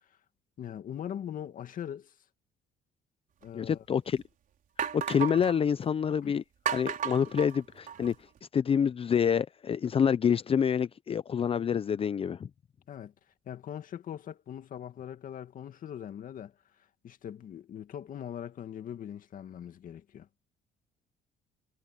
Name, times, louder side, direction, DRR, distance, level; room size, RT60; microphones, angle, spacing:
voice 1, 0.6-2.1 3.4-4.0 6.2-6.4 12.9-13.1 13.5-16.5 17.0-20.3, left 9 dB, 55° left, 2.0 m, -41 dB
sound 1, 3.4-3.5 4.1-4.2 4.8-5.6 6.7-8.2, right 8 dB, 55° right, 4.4 m, -34 dB
voice 2, 3.5-4.2 4.9-6.4 6.7-8.1 8.5-12.5, left 7 dB, 35° left, 0.6 m, -27 dB
cardioid pair, 110°, 17 cm